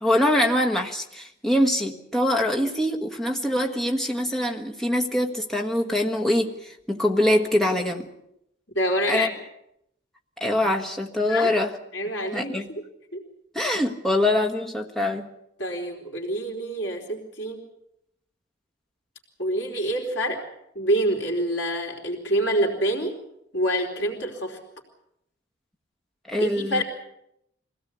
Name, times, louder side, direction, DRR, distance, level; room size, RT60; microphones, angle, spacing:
voice 1, 0.0-8.1 9.1-9.3 10.4-11.7 12.3-12.7 13.5-15.3 26.3-26.8, left 1 dB, ahead, 1 dB, 1.5 m, -24 dB
voice 2, 8.7-9.3 11.3-11.5 11.9-12.8 13.1-13.2 15.6-17.6 19.4-20.4 20.8-23.2 23.5-24.6 26.4-26.8, equal, 70° left, 1 dB, 3.6 m, -26 dB
24.0 x 17.0 x 8.3 m, 0.81 s
head